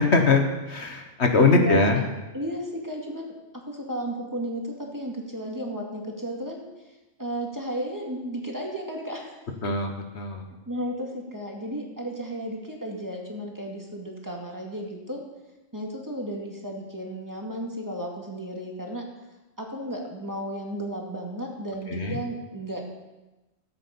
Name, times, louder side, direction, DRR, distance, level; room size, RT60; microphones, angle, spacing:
voice 1, 0.0-2.0 9.6-10.4 21.9-22.2, left 3 dB, 60° left, 4 dB, 1.6 m, -22 dB
voice 2, 1.4-2.0 2.3-3.3 3.7-6.7 7.2-9.5 10.7-15.2 15.7-19.0 19.6-22.8, right 1 dB, 15° right, -1 dB, 2.1 m, -33 dB
15.0 x 8.4 x 7.1 m, 1.1 s
omnidirectional pair, 1.3 m